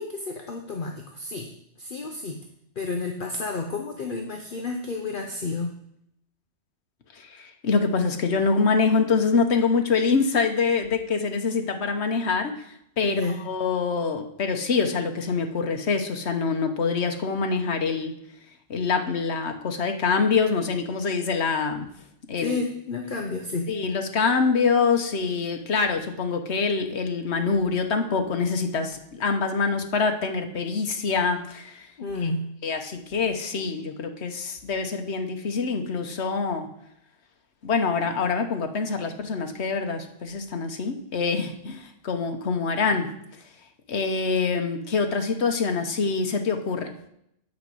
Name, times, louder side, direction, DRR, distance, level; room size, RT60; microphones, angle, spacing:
voice 1, 0.0-1.5 1.8-2.4 2.8-5.7 13.0-13.4 22.4-23.7 32.0-32.5 42.7-42.8, left 3 dB, 50° left, 3 dB, 1.0 m, -31 dB
voice 2, 7.1-12.7 13.0-18.1 18.7-21.9 22.3-22.6 23.7-31.9 32.2-32.3 32.6-36.7 37.6-43.1 43.9-46.9, left 4 dB, 65° left, 6 dB, 1.3 m, -25 dB
9.2 x 5.2 x 7.7 m, 0.75 s
omnidirectional pair, 1.2 m